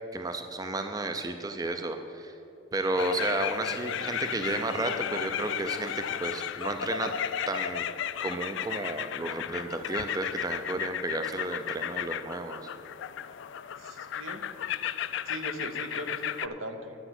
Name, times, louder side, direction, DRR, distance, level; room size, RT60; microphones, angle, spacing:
voice 1, 0.1-2.3 2.7-7.1 7.5-7.9 8.2-12.6, right 2 dB, 20° right, 7 dB, 0.4 m, -32 dB
sound 1, 3.0-16.5, left 9 dB, 65° left, 0.3 m, -34 dB
voice 2, 13.8-14.4 15.3-17.0, right 1 dB, 80° right, 6 dB, 1.0 m, -39 dB
10.0 x 7.9 x 5.9 m, 2.9 s
head